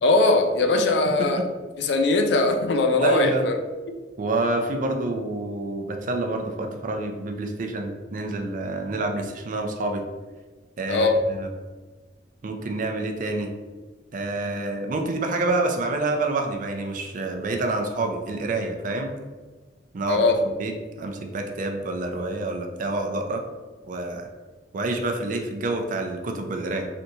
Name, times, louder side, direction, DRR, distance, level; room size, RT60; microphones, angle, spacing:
voice 1, 0.0-1.4 1.8-3.6 10.9-11.2 20.1-20.4, left 3 dB, 70° left, 5 dB, 0.4 m, -20 dB
voice 2, 3.0-3.5 4.2-10.0 10.8-11.5 12.4-13.5 14.1-19.1 19.9-20.2 20.6-20.7 21.0-23.4 23.9-24.3 24.7-26.9, right 2 dB, 50° right, 4 dB, 0.4 m, -28 dB
3.4 x 2.7 x 2.7 m, 1.3 s
head